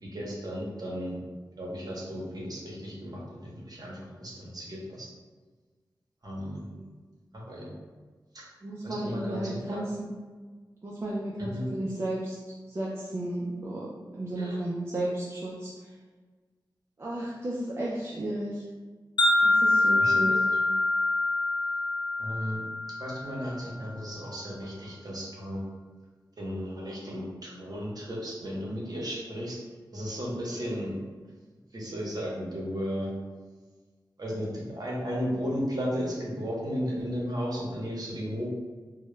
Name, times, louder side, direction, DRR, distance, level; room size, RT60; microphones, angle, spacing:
voice 1, 0.0-1.2 1.6-5.1 6.2-6.6 7.3-7.7 8.3-8.4 8.8-9.8 11.5-11.6 14.4-14.6 20.0-20.4 22.2-22.6 23.0-25.6 26.4-29.6 29.9-30.9 31.7-33.1 34.2-38.5, equal, 55° right, -4 dB, 0.8 m, -34 dB
voice 2, 8.6-10.2 10.8-12.4 12.7-15.9 17.0-18.7 19.4-20.4, right 1 dB, 35° right, -5 dB, 0.4 m, -33 dB
Wind chime, 19.2-23.5, left 2 dB, 65° left, 0.4 m, -25 dB
2.2 x 2.0 x 3.1 m, 1.4 s
wide cardioid pair, 65°, 8 cm